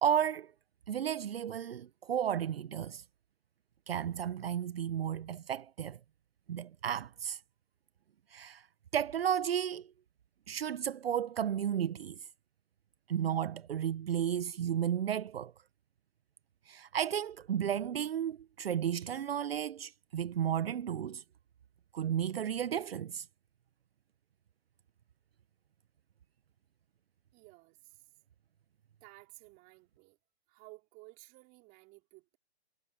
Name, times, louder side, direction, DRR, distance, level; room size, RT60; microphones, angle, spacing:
voice 1, 0.0-0.5 0.9-3.0 3.9-6.0 6.5-7.4 8.3-8.7 8.9-9.9 10.5-12.3 13.1-15.5 16.7-21.2 21.9-23.3, right 9 dB, 65° right, 1.0 m, -33 dB
voice 2, 27.3-28.1 29.0-30.2 30.5-32.4, right 25 dB, 25° right, 3.5 m, -56 dB
hypercardioid pair, 140°, 32 cm